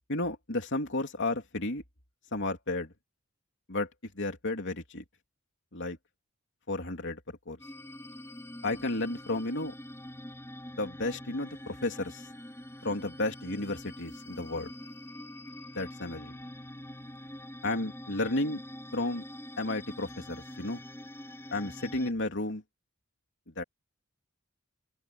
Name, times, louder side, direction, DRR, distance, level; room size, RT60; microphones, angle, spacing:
voice 1, 0.1-1.8 2.3-2.9 3.7-3.9 4.1-5.0 5.7-6.0 6.7-7.2 7.5-7.6 8.6-9.7 10.8-12.3 12.8-14.7 15.7-16.3 17.6-18.6 18.9-19.2 19.6-20.8 21.5-22.6 23.6-23.7, left 2 dB, 60° left, 3.2 m, -32 dB
sound 1, 7.6-22.1, left 1 dB, 15° left, 3.5 m, -45 dB
open air
head